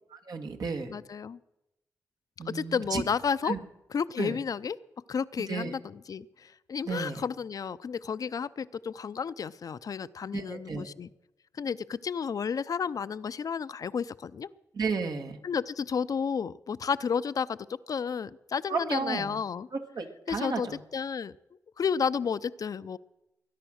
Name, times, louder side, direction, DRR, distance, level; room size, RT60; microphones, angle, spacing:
voice 1, 0.1-0.9 2.4-3.0 3.4-3.6 4.2-4.4 5.5-5.7 6.9-7.2 10.3-10.9 14.7-15.4 18.7-19.4 19.7-20.8, right 4 dB, 70° right, 5 dB, 1.8 m, -33 dB
voice 2, 0.9-1.4 2.5-3.6 3.9-4.8 5.1-11.1 11.6-14.5 15.4-17.6 17.9-19.7 20.3-20.7 20.9-21.3 21.8-23.0, left 6 dB, 60° left, 15 dB, 0.5 m, -32 dB
21.0 x 10.0 x 6.4 m, 0.93 s
cardioid pair, 65°, 7 cm